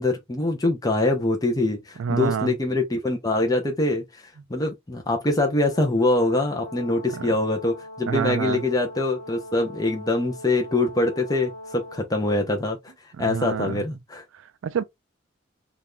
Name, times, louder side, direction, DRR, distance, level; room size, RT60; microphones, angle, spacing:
voice 1, 0.0-12.9 13.2-14.2, left 2 dB, 20° left, 0.6 m, -24 dB
voice 2, 2.0-2.5 7.1-7.3 8.1-8.6 13.2-13.8 14.6-14.8, right 6 dB, 75° right, 0.3 m, -27 dB
Brass instrument, 5.7-12.1, left 1 dB, 55° left, 1.4 m, -41 dB
2.9 x 2.4 x 3.4 m
head